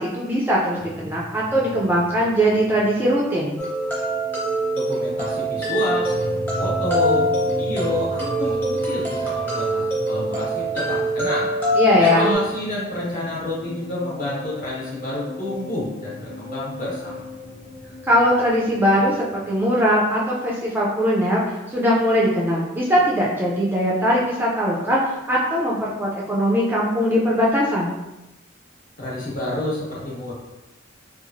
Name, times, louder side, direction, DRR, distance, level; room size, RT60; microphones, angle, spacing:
voice 1, 0.0-3.5 11.8-12.3 18.1-27.9, equal, 10° right, -5 dB, 0.3 m, -20 dB
sound 1, 0.8-19.6, left 2 dB, 80° left, 0.8 m, -38 dB
sound 2, 3.6-12.3, right 1 dB, 10° left, 0.8 m, -24 dB
voice 2, 4.7-6.2 6.6-11.5 12.0-17.2 29.0-30.3, left 1 dB, 45° left, -6 dB, 0.9 m, -29 dB
2.9 x 2.3 x 2.5 m, 1.0 s
head